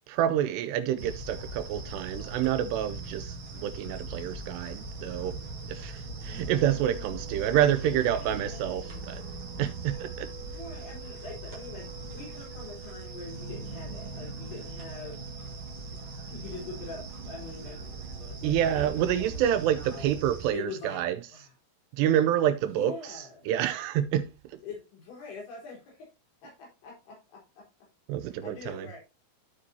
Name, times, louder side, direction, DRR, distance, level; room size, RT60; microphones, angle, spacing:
voice 1, 0.1-5.3 5.7-9.2 9.6-10.3 18.4-21.2 22.0-24.6 28.1-28.9, right 11 dB, 85° right, 2.4 m, -28 dB
sound 1, 1.0-20.5, right 3 dB, 70° right, 1.2 m, -40 dB
voice 2, 7.5-8.9 10.4-15.3 16.3-20.1 20.5-21.0 21.3-21.5 22.6-23.5 24.6-26.1 26.4-27.6 28.2-29.0, left 4 dB, 70° left, 5.9 m, -44 dB
14.0 x 5.0 x 2.8 m
omnidirectional pair, 5.5 m